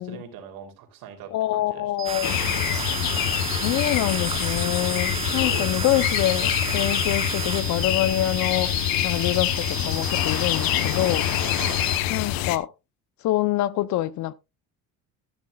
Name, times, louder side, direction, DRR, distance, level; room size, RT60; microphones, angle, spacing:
voice 1, 0.0-2.1 5.4-6.0 11.6-11.8, right 8 dB, 70° right, 3.1 m, -41 dB
voice 2, 1.3-2.4 3.6-8.7 9.0-11.3 12.1-12.7 13.2-14.3, left 14 dB, 55° left, 0.7 m, -25 dB
sound 1, 2.0-12.0, right 11 dB, 50° right, 1.1 m, -35 dB
sound 2, 2.1-7.6, right 5 dB, 15° right, 1.1 m, -33 dB
sound 3, 2.2-12.6, left 13 dB, 75° left, 0.9 m, -26 dB
13.0 x 11.5 x 2.3 m
cardioid pair, 140°, 35 cm